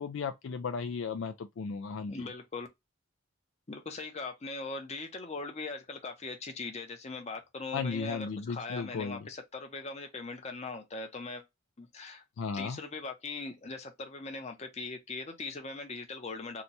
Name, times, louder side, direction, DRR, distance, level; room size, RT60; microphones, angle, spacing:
voice 1, 0.0-2.3 7.7-9.3 12.4-12.8, left 5 dB, 60° left, 0.3 m, -35 dB
voice 2, 2.1-2.7 3.7-11.4 11.8-12.2 12.5-16.6, left 3 dB, 30° left, 0.7 m, -40 dB
2.8 x 2.2 x 4.0 m
head